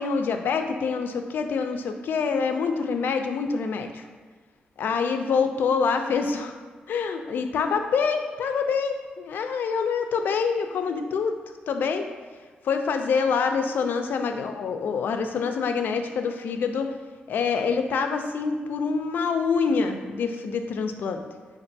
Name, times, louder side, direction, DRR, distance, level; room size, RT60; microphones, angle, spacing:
voice 1, 0.0-4.0 4.8-6.6 6.9-11.4 11.7-12.1 12.6-16.9 17.3-21.2, left 5 dB, 75° left, 6 dB, 0.3 m, -26 dB
5.2 x 2.5 x 2.6 m, 1.4 s
cardioid pair, 110°, 3 cm